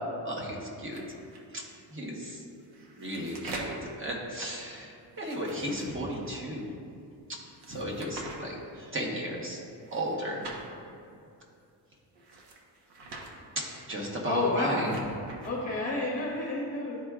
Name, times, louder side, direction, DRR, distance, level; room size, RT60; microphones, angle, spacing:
voice 1, 0.2-1.0 1.5-1.6 1.9-2.4 3.0-4.9 5.2-6.6 7.7-8.6 8.9-9.6 9.9-10.4 13.6-14.9, right 1 dB, 30° right, -2 dB, 1.2 m, -34 dB
sound 1, 0.9-1.4 2.6-3.9 5.1-6.4 7.6-8.4 9.8-10.6 12.2-13.3 14.5-15.5, right 2 dB, 70° right, 1.1 m, -44 dB
voice 2, 14.2-14.9 15.4-17.0, left 2 dB, 20° left, -3 dB, 0.9 m, -30 dB
11.5 x 4.5 x 2.4 m, 2.5 s
cardioid pair, 150°, 41 cm